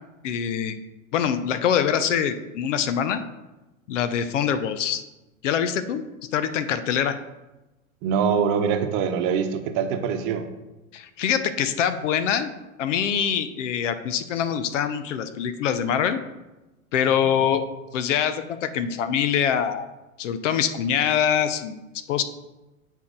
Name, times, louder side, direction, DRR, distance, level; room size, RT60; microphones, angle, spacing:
voice 1, 0.2-0.7 1.1-3.2 3.9-5.0 5.4-6.0 6.3-7.2 10.9-12.5 12.8-16.2 16.9-17.6 17.9-19.9 20.2-21.7 22.1-22.2, left 8 dB, 60° left, 11 dB, 0.7 m, -24 dB
voice 2, 8.0-10.5 17.4-17.5, right 7 dB, 45° right, 6 dB, 1.0 m, -24 dB
8.1 x 4.5 x 3.9 m, 1.0 s
figure-of-eight pair, 90°, 41 cm